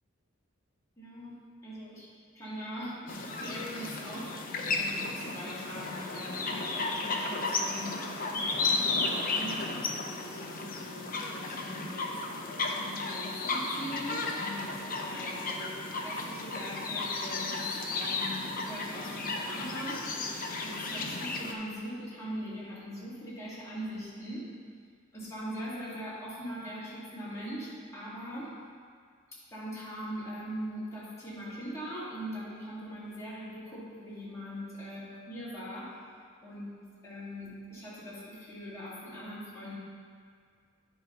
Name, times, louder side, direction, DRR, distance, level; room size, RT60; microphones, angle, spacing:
voice 1, 1.0-2.1 2.3-4.3 4.6-8.0 8.3-12.1 12.7-15.7 16.0-20.0 20.6-24.5 25.1-28.5 29.5-35.9 36.4-39.8, equal, 15° left, -10 dB, 2.3 m, -41 dB
sound 1, 3.1-21.5, left 3 dB, 40° left, 0.7 m, -34 dB
10.0 x 4.0 x 5.5 m, 2.1 s
head